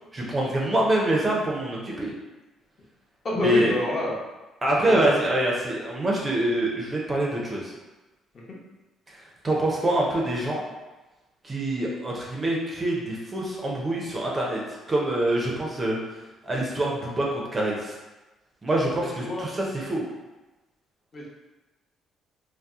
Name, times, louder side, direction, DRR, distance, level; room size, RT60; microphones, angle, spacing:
voice 1, 0.1-2.1 3.4-3.7 4.6-7.7 9.4-10.6 11.4-14.6 14.9-16.0 16.4-17.9 18.6-20.0, right 1 dB, 20° right, -2 dB, 0.5 m, -25 dB
voice 2, 3.2-4.2 4.9-5.1 8.3-8.6 19.0-19.5 21.1-21.3, left 1 dB, 35° left, -4 dB, 0.7 m, -28 dB
2.7 x 2.1 x 3.5 m, 1.1 s
cardioid pair, 130°, 0 cm